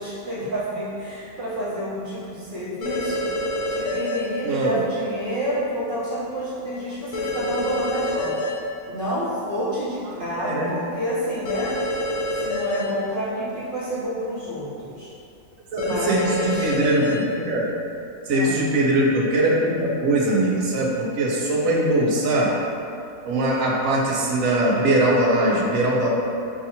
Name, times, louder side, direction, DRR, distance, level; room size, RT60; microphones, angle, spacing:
voice 1, 0.0-3.3 3.7-8.5 8.9-11.8 12.3-15.1 15.8-16.7 18.3-18.6, equal, 40° right, -10 dB, 1.0 m, -29 dB
sound 1, 2.8-4.2 7.1-8.5 11.5-12.8 15.8-17.1, left 1 dB, 70° left, 1.1 m, -26 dB
voice 2, 4.4-4.8 10.4-10.7 15.7-17.7 18.3-22.5 23.2-26.1, right 1 dB, 70° right, -3 dB, 1.1 m, -21 dB
6.2 x 2.4 x 2.8 m, 2.7 s
omnidirectional pair, 1.5 m